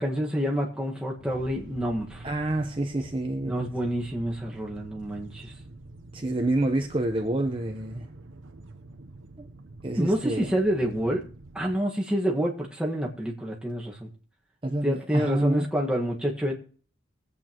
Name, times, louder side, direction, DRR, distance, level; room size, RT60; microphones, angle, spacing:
voice 1, 0.0-2.3 3.4-5.5 10.0-11.3 11.5-14.1 14.8-16.5, equal, 5° right, 1.6 m, -28 dB
sound 1, 1.2-11.8, right 2 dB, 85° right, 0.8 m, -46 dB
voice 2, 2.2-3.6 6.1-8.1 9.4-9.5 9.8-10.5 14.6-15.7, right 1 dB, 25° right, 0.8 m, -28 dB
22.5 x 8.3 x 3.0 m
head